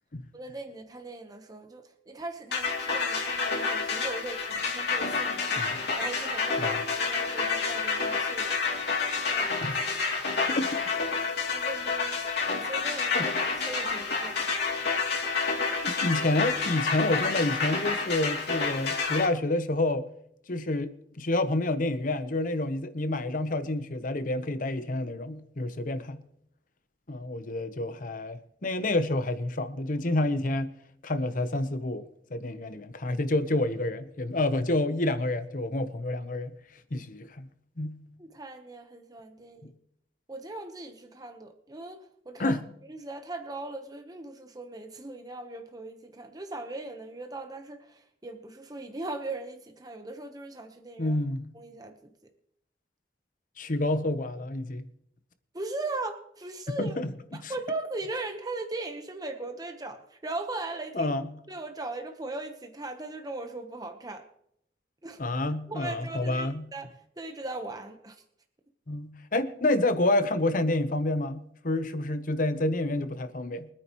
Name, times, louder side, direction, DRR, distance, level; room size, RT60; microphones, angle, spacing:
voice 1, 0.3-5.6 6.0-8.5 9.3-9.5 11.5-14.5 38.2-39.7 40.3-42.6 42.9-51.2 51.5-52.1 55.5-57.0 57.3-61.1 61.5-64.3 65.0-65.2 65.7-66.9 67.2-68.2, right 2 dB, 20° right, 1.0 m, -39 dB
sound 1, 2.5-19.3, left 4 dB, 65° left, 2.8 m, -29 dB
voice 2, 9.6-9.9 10.5-10.7 13.1-13.3 15.8-20.1 20.5-26.2 27.1-30.7 31.0-32.0 32.3-36.5 36.9-37.5 37.8-38.0 42.4-42.6 51.0-51.5 53.6-54.9 56.8-57.5 60.9-61.3 65.2-66.6 68.9-73.7, left 2 dB, 50° left, 0.9 m, -28 dB
24.0 x 9.5 x 3.1 m
head